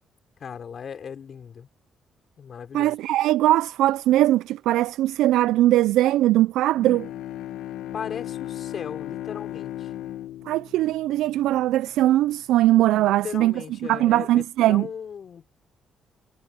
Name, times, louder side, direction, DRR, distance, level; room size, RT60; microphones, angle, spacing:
voice 1, 0.4-1.7 2.4-3.0 7.9-9.9 13.0-15.5, left 7 dB, 50° left, 4.8 m, -37 dB
voice 2, 2.7-7.1 10.5-13.5 13.9-14.9, right 14 dB, 90° right, 0.3 m, -20 dB
Bowed string instrument, 6.7-11.8, left 12 dB, 90° left, 1.3 m, -36 dB
cardioid pair, 90°, 0 cm